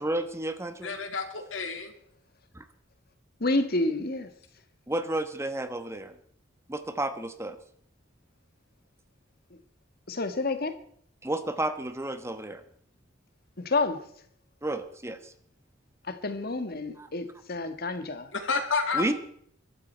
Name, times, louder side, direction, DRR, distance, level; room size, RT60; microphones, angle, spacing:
voice 1, 0.0-1.0 2.5-2.6 4.9-6.1 6.7-7.6 11.2-12.6 14.6-15.3 17.0-17.1 18.9-19.1, right 1 dB, 15° right, 1.2 m, -31 dB
voice 2, 0.8-1.9 18.3-19.1, left 4 dB, 75° left, 2.4 m, -30 dB
voice 3, 3.4-4.3 9.5-9.6 10.1-10.8 13.6-14.1 16.0-18.3, left 2 dB, 50° left, 1.6 m, -29 dB
22.5 x 12.5 x 4.5 m
head